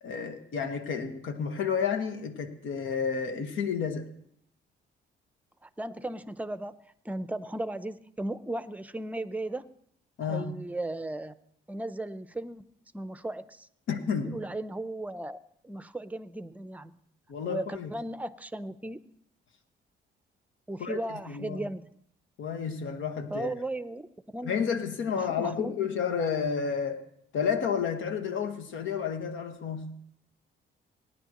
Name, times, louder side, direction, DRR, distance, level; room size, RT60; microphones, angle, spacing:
voice 1, 0.0-4.1 10.2-10.5 13.9-14.4 17.3-17.9 20.8-21.6 22.4-23.5 24.4-27.1 27.3-30.0, left 6 dB, 80° left, 6 dB, 1.5 m, -31 dB
voice 2, 5.6-6.8 7.0-9.7 10.3-11.3 11.7-12.7 12.9-13.7 14.2-16.9 17.4-19.0 20.7-21.9 23.3-24.0 24.3-24.6 25.1-25.7, right 1 dB, 5° right, 13 dB, 0.6 m, -36 dB
18.5 x 10.5 x 3.0 m, 0.69 s
cardioid pair, 90°, 20 cm